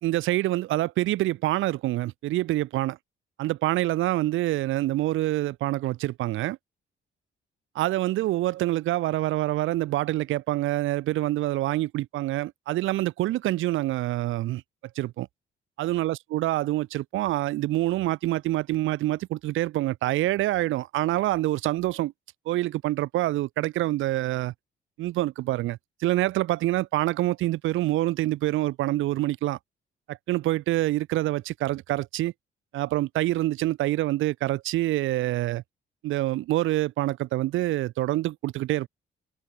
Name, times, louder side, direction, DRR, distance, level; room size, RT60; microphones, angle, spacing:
voice 1, 0.0-3.0 3.4-6.6 7.8-14.6 14.9-15.3 15.8-22.1 22.5-24.5 25.0-29.6 30.1-32.3 32.7-35.6 36.0-38.9, right 16 dB, 90° right, 1.3 m, -26 dB
cardioid pair, 90°, 20 cm